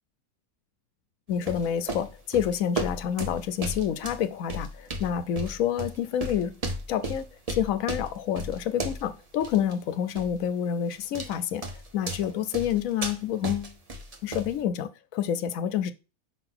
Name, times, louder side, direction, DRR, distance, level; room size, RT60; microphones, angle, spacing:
voice 1, 1.3-6.5 6.9-11.6 11.9-13.7 14.2-15.9, left 9 dB, 75° left, 1.0 m, -28 dB
sound 1, 1.3-9.1 9.4-9.7 10.2-10.4 10.9-11.4 11.6-14.6, right 1 dB, 30° right, 0.9 m, -35 dB
5.5 x 3.9 x 6.0 m
omnidirectional pair, 1.5 m